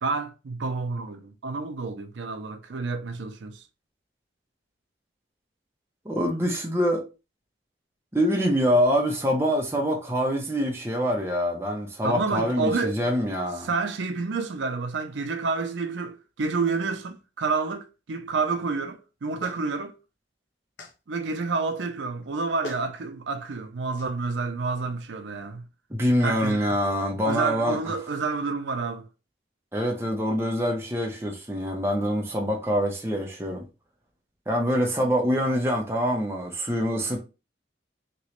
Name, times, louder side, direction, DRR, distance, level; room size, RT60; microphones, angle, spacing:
voice 1, 0.0-3.6 12.0-13.0 13.6-20.0 21.1-25.6 26.2-26.6 27.3-29.1, right 4 dB, 80° right, 0.5 m, -29 dB
voice 2, 6.0-7.1 8.1-13.7 25.9-27.8 29.7-33.6 34.5-37.2, equal, 15° right, 0.7 m, -25 dB
Clapping, 19.4-19.6 20.8-21.0 22.2-22.3 22.6-22.9 24.0-24.1, left 1 dB, 80° left, 0.8 m, -39 dB
3.0 x 3.0 x 3.0 m
head